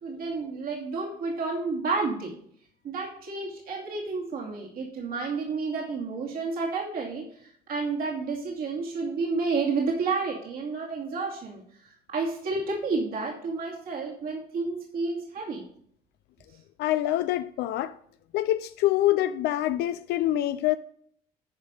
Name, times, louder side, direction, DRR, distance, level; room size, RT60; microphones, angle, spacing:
voice 1, 0.0-2.3 2.8-7.2 7.7-11.6 12.1-15.7, right 4 dB, 60° right, 2.6 m, -30 dB
voice 2, 16.8-18.0 18.3-20.8, left 14 dB, 80° left, 0.4 m, -25 dB
10.0 x 5.3 x 5.3 m
cardioid pair, 110°, 17 cm